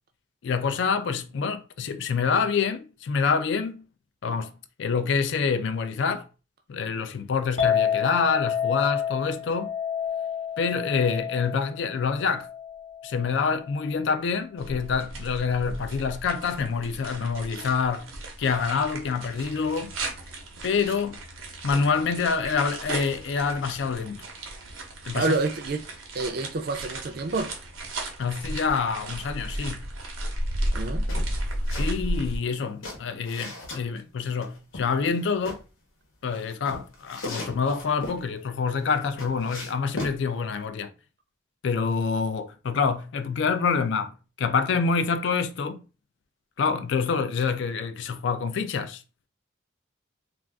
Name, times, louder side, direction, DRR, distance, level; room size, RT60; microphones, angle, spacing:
voice 1, 0.4-3.9 4.2-6.3 6.7-9.7 10.6-12.5 13.0-19.9 20.6-21.2 21.6-24.2 25.1-25.4 28.2-29.9 31.7-35.6 36.2-40.9 41.6-45.8 46.6-49.0, left 5 dB, 60° left, 0.3 m, -26 dB
Chink clink, 7.6-13.9, left 8 dB, 35° left, 0.7 m, -29 dB
sound 1, 14.6-32.4, right 1 dB, 90° right, 0.8 m, -34 dB
voice 2, 25.2-25.8 26.1-27.5 30.7-31.1, right 3 dB, 50° right, 0.4 m, -28 dB
sound 2, 31.1-31.9 32.2-33.8 34.4-35.6 36.3-38.2 38.7-40.2, left 2 dB, 85° left, 1.0 m, -38 dB
2.4 x 2.4 x 3.3 m
head